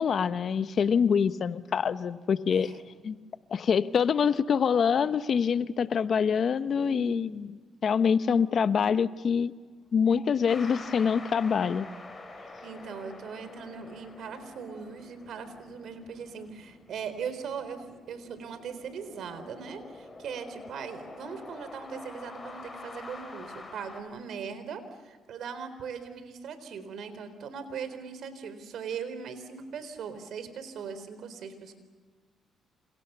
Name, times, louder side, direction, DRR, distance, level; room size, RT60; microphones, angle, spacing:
voice 1, 0.0-2.7 3.0-3.2 3.5-7.6 7.8-9.5 9.9-11.9, left 6 dB, 55° left, 13 dB, 1.0 m, -25 dB
voice 2, 2.5-2.8 6.7-7.4 12.6-31.7, right 6 dB, 70° right, 11 dB, 4.0 m, -40 dB
sound 1, 10.5-24.0, left 2 dB, 20° left, 6.3 m, -47 dB
28.5 x 28.0 x 6.9 m, 1.4 s
cardioid pair, 90°, 0 cm